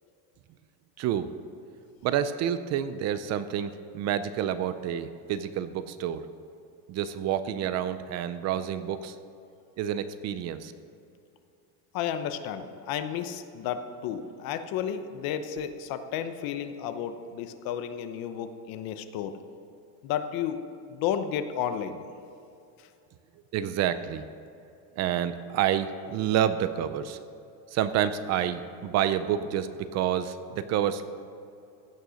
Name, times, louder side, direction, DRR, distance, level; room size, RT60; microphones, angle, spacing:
voice 1, 1.0-1.3 2.0-6.2 6.9-9.2 9.8-10.7 23.5-24.2 25.0-27.2 27.7-31.0, right 10 dB, 40° right, 12 dB, 0.4 m, -28 dB
voice 2, 11.9-19.4 20.0-20.6 20.9-22.1, left 9 dB, 55° left, 10 dB, 0.9 m, -32 dB
15.5 x 6.6 x 6.3 m, 2.6 s
cardioid pair, 165°, 41 cm